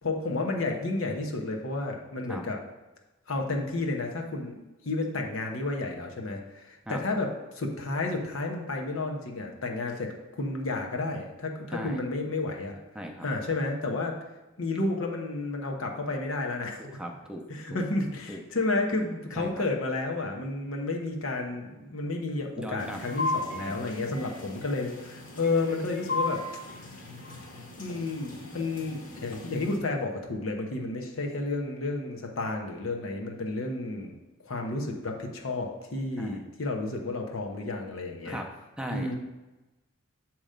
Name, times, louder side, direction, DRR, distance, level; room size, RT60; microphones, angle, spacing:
voice 1, 0.0-2.6 3.3-4.6 4.8-7.3 7.5-12.8 13.2-14.2 14.6-16.9 17.5-26.4 27.5-38.4 38.9-39.1, left 2 dB, 85° left, 2 dB, 0.9 m, -31 dB
voice 2, 12.9-13.3 16.8-17.4 17.7-17.8 18.3-18.4 19.4-19.6 22.6-23.0 23.6-23.9 36.2-36.5 38.2-38.5 38.8-39.1, equal, 5° right, 2 dB, 0.5 m, -38 dB
sound 1, 22.8-29.8, left 2 dB, 40° left, 1.0 m, -36 dB
7.5 x 3.0 x 5.0 m, 1.1 s
head